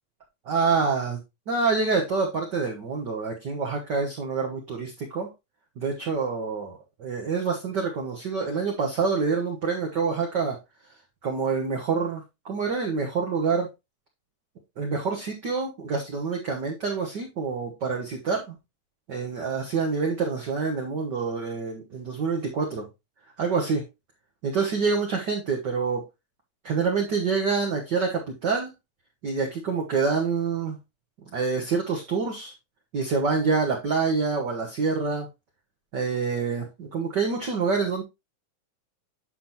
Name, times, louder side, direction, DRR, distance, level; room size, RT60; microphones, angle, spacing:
voice 1, 0.4-1.2 1.5-5.3 5.8-10.6 11.2-13.7 14.8-18.5 19.1-22.9 23.4-23.8 24.4-26.0 26.6-28.7 29.2-30.8 31.3-32.5 32.9-35.3 35.9-38.0, right 4 dB, 55° right, 1 dB, 1.3 m, -26 dB
9.4 x 6.0 x 2.9 m, 0.23 s
omnidirectional pair, 3.5 m